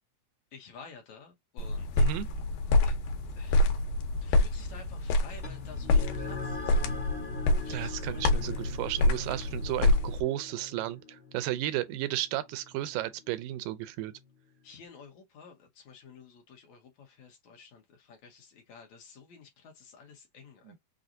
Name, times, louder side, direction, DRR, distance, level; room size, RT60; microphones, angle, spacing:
voice 1, 0.5-2.0 2.8-2.9 3.4-3.6 4.2-7.0 7.6-8.3 14.6-20.8, left 5 dB, 65° left, 2.2 m, -52 dB
sound 1, 1.6-10.2, left 2 dB, 85° left, 2.5 m, -27 dB
sound 2, 5.4-14.3, left 4 dB, 30° left, 1.1 m, -44 dB
voice 2, 7.7-14.1 20.7-20.8, right 14 dB, 85° right, 2.2 m, -33 dB
6.1 x 2.4 x 2.6 m
omnidirectional pair, 3.9 m